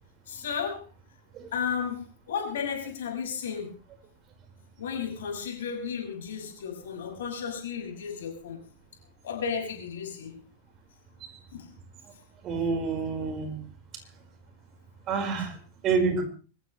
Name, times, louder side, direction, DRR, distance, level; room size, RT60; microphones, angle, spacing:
voice 1, 0.3-0.8 1.5-3.7 4.8-8.6 9.2-10.4 11.5-11.7, left 7 dB, 70° left, 2 dB, 6.1 m, -33 dB
voice 2, 12.4-13.6 15.1-15.5 15.8-16.2, right 5 dB, 35° right, 4 dB, 5.1 m, -27 dB
25.0 x 14.5 x 3.3 m, 0.37 s
figure-of-eight pair, 95°, 0 cm